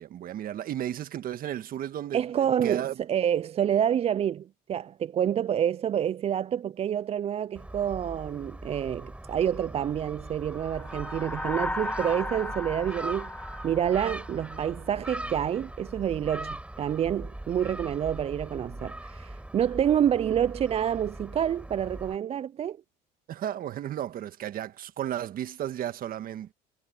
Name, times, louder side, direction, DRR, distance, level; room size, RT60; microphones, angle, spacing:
voice 1, 0.0-3.0 23.3-26.5, right 11 dB, 55° right, 1.6 m, -34 dB
voice 2, 2.1-13.3 13.6-22.8, right 9 dB, 35° right, 0.4 m, -28 dB
Gull seagull, 7.6-22.2, right 1 dB, 5° right, 5.2 m, -41 dB
sound 1, 10.5-15.1, left 2 dB, 10° left, 1.5 m, -36 dB
supercardioid pair, 90°, 18 cm